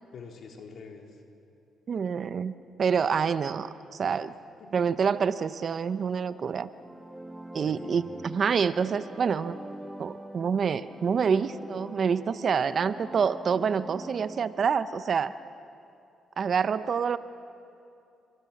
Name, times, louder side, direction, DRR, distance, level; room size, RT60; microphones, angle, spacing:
voice 1, 0.1-1.2 4.5-5.0 7.6-8.2, left 4 dB, 60° left, 2 dB, 4.0 m, -46 dB
voice 2, 1.9-4.3 4.7-6.7 7.5-9.6 10.0-15.3 16.4-17.2, right 6 dB, 50° right, 13 dB, 0.9 m, -27 dB
sound 1, 6.6-14.5, right 1 dB, 10° right, 1.6 m, -43 dB
30.0 x 25.0 x 7.3 m, 2.6 s
cardioid pair, 90°, 0 cm